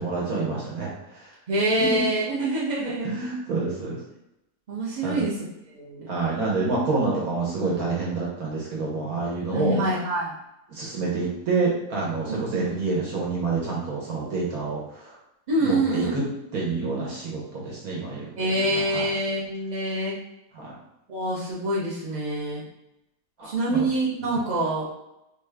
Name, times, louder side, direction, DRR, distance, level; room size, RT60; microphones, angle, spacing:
voice 1, 0.0-1.3 1.8-2.0 2.8-4.0 5.0-5.3 6.1-9.8 10.7-15.2 15.6-16.2 16.5-19.1 20.5-20.7 23.4-23.9 24.3-24.4, right 3 dB, 65° right, -4 dB, 1.3 m, -28 dB
voice 2, 1.5-3.1 4.7-5.4 5.7-6.1 9.5-10.3 12.3-12.7 15.5-16.1 18.4-20.2 21.1-22.6 23.4-24.8, right 1 dB, 45° right, -9 dB, 0.6 m, -26 dB
3.5 x 2.3 x 3.3 m, 0.89 s
omnidirectional pair, 1.7 m